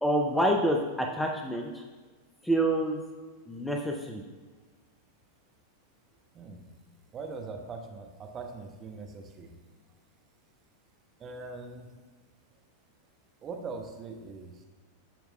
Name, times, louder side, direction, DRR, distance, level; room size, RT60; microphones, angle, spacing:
voice 1, 0.0-1.8 2.4-3.0 3.5-4.2, right 1 dB, 5° left, 1 dB, 0.6 m, -27 dB
voice 2, 6.3-6.7 7.1-9.6 11.2-11.9 13.4-14.6, right 4 dB, 25° right, 3 dB, 0.9 m, -41 dB
13.5 x 4.6 x 2.2 m, 1.3 s
figure-of-eight pair, 90°, 0 cm